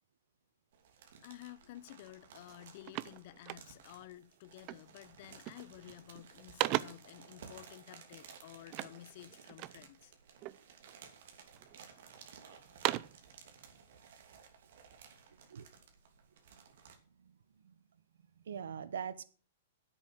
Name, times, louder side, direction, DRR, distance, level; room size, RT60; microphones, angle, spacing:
sound 1, 0.7-17.0, right 6 dB, 65° right, 2.8 m, -57 dB
voice 1, 1.2-10.1, left 15 dB, 45° left, 0.6 m, -52 dB
sound 2, 2.0-2.2 2.5-4.0 4.7-5.0 5.3-5.8 6.2-7.2 8.7-9.9 10.4-11.0 11.6-12.2 12.6-13.3, right 17 dB, 35° right, 0.5 m, -39 dB
voice 2, 15.3-15.7 17.2-17.8 18.4-19.2, right 7 dB, 90° right, 0.9 m, -43 dB
10.0 x 8.2 x 6.4 m
hypercardioid pair, 155°, 0 cm